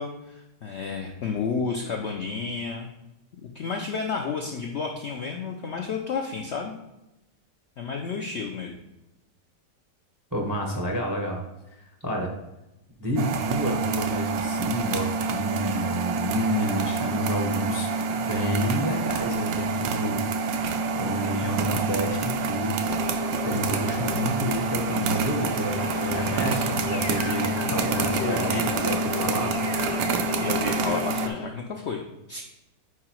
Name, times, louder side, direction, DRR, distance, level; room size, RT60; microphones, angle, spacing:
voice 1, 0.0-2.9 3.4-6.7 7.8-8.7 26.5-26.8 27.6-27.8 28.2-28.4 30.4-32.0 32.3-32.4, left 5 dB, 80° left, 2 dB, 0.6 m, -31 dB
voice 2, 10.3-11.4 11.7-12.3 13.0-22.8 23.1-29.5, equal, 30° right, 0 dB, 0.3 m, -30 dB
sound 1, 13.2-31.3, right 3 dB, 70° right, 0.9 m, -27 dB
sound 2, 22.9-31.5, left 4 dB, 55° left, 0.8 m, -35 dB
4.9 x 4.7 x 4.4 m, 0.94 s
omnidirectional pair, 1.8 m